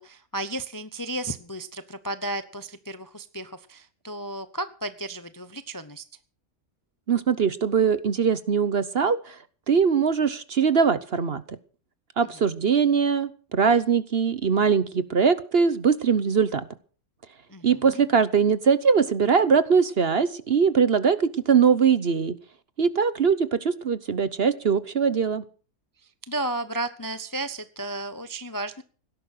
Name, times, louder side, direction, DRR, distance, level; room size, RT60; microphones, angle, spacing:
voice 1, 0.0-6.0 17.5-18.0 26.2-28.8, right 2 dB, 20° left, 12 dB, 0.5 m, -33 dB
voice 2, 7.1-9.4 9.7-11.4 12.2-16.6 17.6-22.3 22.8-25.4, right 6 dB, 45° right, 14 dB, 1.0 m, -21 dB
17.5 x 11.0 x 6.5 m, 0.41 s
omnidirectional pair, 1.6 m